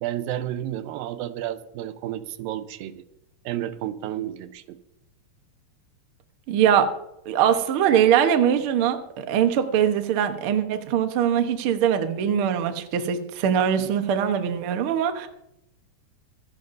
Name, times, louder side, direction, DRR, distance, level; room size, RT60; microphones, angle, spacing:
voice 1, 0.0-3.0 3.5-4.8, right 12 dB, 85° right, 12 dB, 2.5 m, -31 dB
voice 2, 6.5-6.9 7.3-15.3, right 9 dB, 70° right, 7 dB, 1.3 m, -22 dB
24.5 x 10.5 x 2.6 m, 0.83 s
omnidirectional pair, 4.0 m